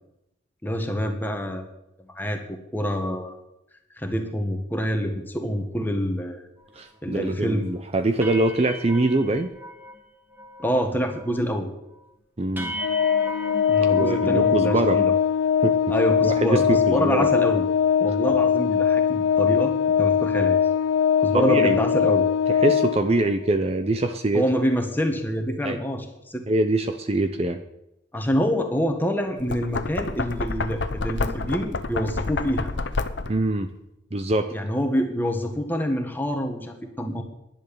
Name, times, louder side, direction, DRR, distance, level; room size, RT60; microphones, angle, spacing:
voice 1, 0.6-1.7 2.1-2.4 2.7-3.4 4.0-6.4 7.0-7.7 10.6-11.7 13.7-15.1 15.9-17.6 18.0-19.7 20.0-20.6 21.2-22.2 24.3-26.4 28.1-32.7 34.5-37.2, equal, 10° left, 4 dB, 1.5 m, -26 dB
sound 1, 6.7-6.8 7.2-7.4 7.7-7.8 8.2-10.0 10.3-10.8 11.0-11.5 11.9-12.0 12.6-15.1, equal, 10° right, 1.9 m, -37 dB
voice 2, 6.8-9.5 12.4-12.7 13.9-15.0 15.6-15.8 16.2-17.3 21.3-21.8 22.5-24.5 25.6-25.8 26.5-27.6 33.3-33.7 34.1-34.5, right 2 dB, 30° right, 7 dB, 0.7 m, -23 dB
Organ, 12.8-23.5, left 8 dB, 90° left, 0.4 m, -21 dB
Knock, 29.3-33.5, left 3 dB, 65° left, 0.8 m, -29 dB
11.0 x 10.5 x 7.0 m, 0.86 s
head